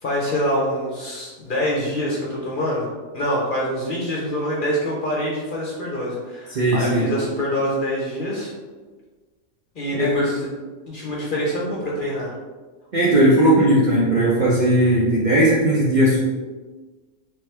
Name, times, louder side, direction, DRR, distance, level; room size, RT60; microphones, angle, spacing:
voice 1, 0.0-2.9 3.1-8.5 9.7-10.5 10.9-12.3, equal, 45° left, -4 dB, 0.7 m, -25 dB
voice 2, 6.5-7.1 9.9-10.1 12.9-16.2, right 1 dB, 90° right, -6 dB, 0.4 m, -17 dB
3.4 x 3.2 x 3.2 m, 1.3 s
omnidirectional pair, 1.6 m